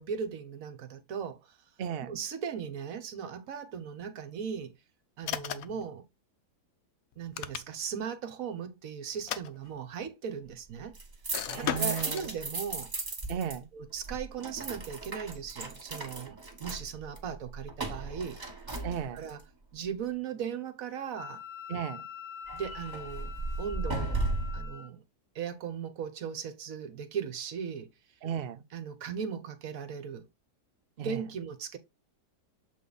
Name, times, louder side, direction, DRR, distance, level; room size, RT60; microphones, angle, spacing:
voice 1, 0.0-1.4 2.0-4.7 5.2-6.0 7.2-11.0 11.6-12.9 13.7-18.4 19.1-19.4 19.7-21.4 22.5-23.3 23.6-24.2 24.5-25.0 25.3-27.9 28.7-30.3 31.0-31.8, right 7 dB, 60° right, 1.2 m, -38 dB
voice 2, 1.8-2.1 11.5-12.2 13.3-13.7 18.8-19.2 21.7-22.0 28.2-28.6 31.0-31.2, right 8 dB, 75° right, 0.5 m, -35 dB
Various Buttons and switches, 5.2-5.8 7.1-8.0 9.1-10.1 11.3-12.3, left 10 dB, 65° left, 1.0 m, -36 dB
sound 1, 10.8-13.6 13.8-19.4 22.5-24.7, right 2 dB, 25° right, 1.6 m, -36 dB
Wind instrument woodwind instrument, 21.2-24.9, left 8 dB, 85° left, 0.4 m, -44 dB
7.4 x 3.5 x 3.9 m
omnidirectional pair, 1.8 m